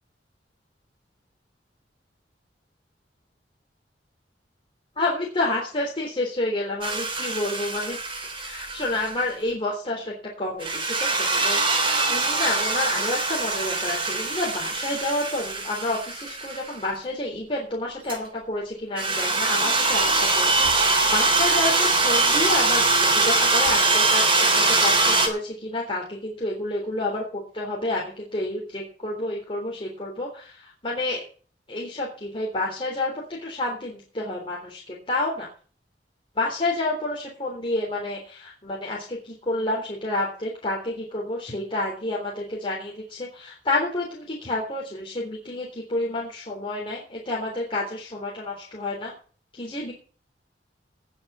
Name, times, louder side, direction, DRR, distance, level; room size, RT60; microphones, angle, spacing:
voice 1, 5.0-8.0 8.3-31.2 31.7-35.5 36.4-49.1 49.5-49.9, left 2 dB, 30° left, -3 dB, 3.7 m, -29 dB
sound 1, 6.8-9.3 10.6-16.7 18.1-18.2 19.0-25.3, right 3 dB, 30° right, 3.5 m, -23 dB
19.0 x 6.6 x 5.7 m, 0.40 s
head